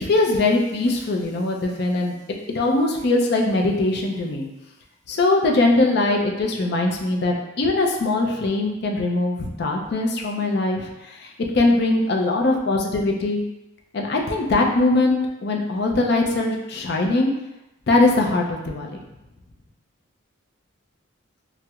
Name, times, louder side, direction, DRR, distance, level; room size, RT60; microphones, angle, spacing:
voice 1, 0.0-2.1 2.5-4.5 5.1-11.3 11.5-13.4 13.9-17.3 17.9-19.0, left 2 dB, 55° left, 1 dB, 0.4 m, -21 dB
4.3 x 2.0 x 2.3 m, 0.94 s
head